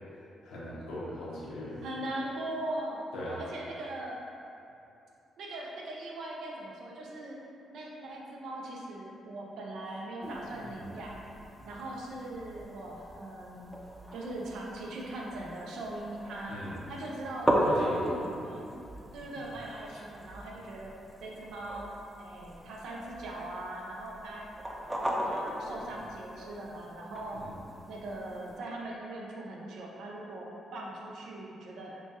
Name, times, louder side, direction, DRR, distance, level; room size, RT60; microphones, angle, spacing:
voice 1, 0.1-1.8 3.1-3.4 16.5-16.8 17.6-18.2 27.3-27.6, left 1 dB, 90° left, -7 dB, 1.0 m, -39 dB
voice 2, 1.8-3.0 3.4-4.2 5.4-7.4 7.7-11.1 11.6-13.8 14.1-16.6 16.9-17.6 17.8-18.6 19.1-20.9 21.2-21.9 22.2-24.5 25.0-27.4 27.9-32.0, right 1 dB, 75° right, -3 dB, 0.6 m, -40 dB
sound 1, 10.2-28.6, equal, 10° right, 0.6 m, -37 dB
6.0 x 2.3 x 2.9 m, 2.7 s
cardioid pair, 70°, 0 cm